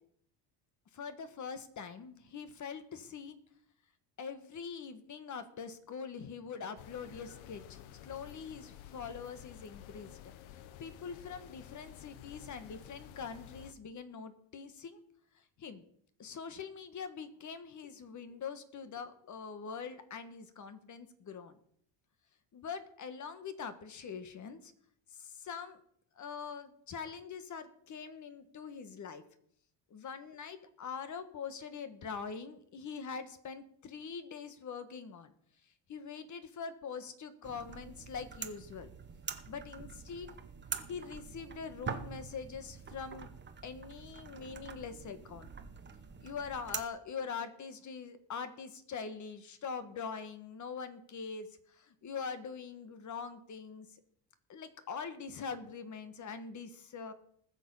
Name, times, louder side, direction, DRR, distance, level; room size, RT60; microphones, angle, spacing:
voice 1, 0.9-3.4 4.2-10.2 10.8-15.0 15.6-15.8 16.2-21.6 22.5-24.7 25.1-25.8 26.2-29.2 29.9-35.3 35.9-38.9 39.5-40.3 40.9-43.3 43.6-45.5 46.2-53.9 54.5-57.1, left 6 dB, 35° left, 11 dB, 1.4 m, -43 dB
sound 1, 6.8-13.7, left 11 dB, 75° left, 1.1 m, -52 dB
Lamp shade switch, 37.4-46.9, right 6 dB, 25° right, 1.0 m, -45 dB
19.5 x 6.8 x 5.5 m, 0.68 s
cardioid pair, 135°, 48 cm